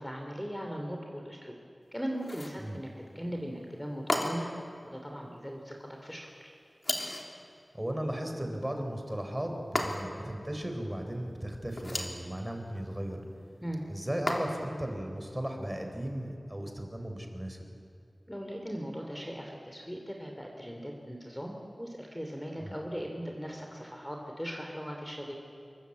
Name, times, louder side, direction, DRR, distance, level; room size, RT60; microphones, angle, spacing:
voice 1, 0.0-1.6 1.9-2.9 3.1-4.5 4.9-6.5 13.6-13.8 18.3-25.3, equal, 5° left, 1 dB, 3.0 m, -39 dB
sound 1, 2.2-2.6 4.1-4.6 6.8-7.3 9.8-10.3 11.7-12.2 14.3-14.8, left 1 dB, 40° left, 3.3 m, -33 dB
voice 2, 7.7-13.2 13.9-17.6 22.6-22.8, right 1 dB, 15° right, 4 dB, 4.1 m, -36 dB
26.5 x 23.0 x 8.4 m, 2.5 s
wide cardioid pair, 70°, 0 cm